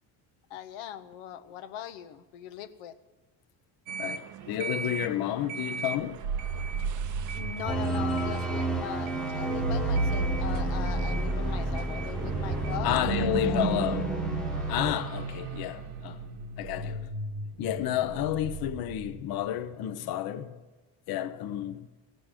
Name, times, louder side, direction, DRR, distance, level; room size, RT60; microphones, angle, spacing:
voice 1, 0.5-3.0 7.3-13.6, left 10 dB, 90° left, 0.9 m, -40 dB
sound 1, 3.9-12.8, right 5 dB, 40° right, 0.6 m, -41 dB
voice 2, 4.0-6.2 12.8-14.1 14.7-16.2 16.6-17.1 17.6-20.5 21.1-21.8, left 12 dB, 50° left, 0.6 m, -31 dB
sound 2, 6.2-19.5, right 4 dB, 90° right, 1.4 m, -34 dB
sound 3, 7.7-14.9, right 1 dB, ahead, 1.0 m, -31 dB
15.5 x 6.5 x 8.9 m
cardioid pair, 130°, 48 cm